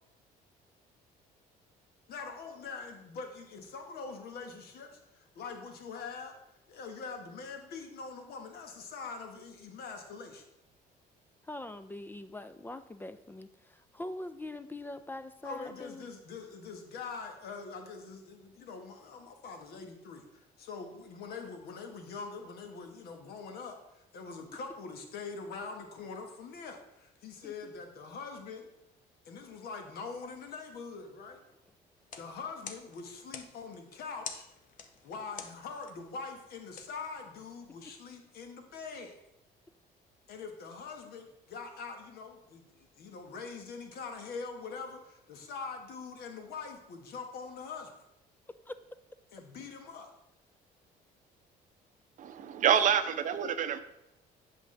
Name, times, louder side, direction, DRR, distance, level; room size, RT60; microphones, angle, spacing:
voice 1, 2.1-6.4 6.7-10.4 15.4-28.7 29.2-31.4 32.2-34.5 35.0-39.1 40.3-47.9 49.3-50.1, left 4 dB, 65° left, 4 dB, 1.3 m, -43 dB
voice 2, 11.4-16.1 27.4-27.7 48.7-48.8, left 2 dB, 10° left, 12 dB, 0.3 m, -43 dB
sound 1, 31.9-37.8, left 6 dB, 50° left, 0.7 m, -49 dB
voice 3, 52.2-53.8, right 8 dB, 50° right, 10 dB, 0.6 m, -27 dB
8.0 x 6.0 x 3.2 m, 0.85 s
cardioid pair, 110°, 17 cm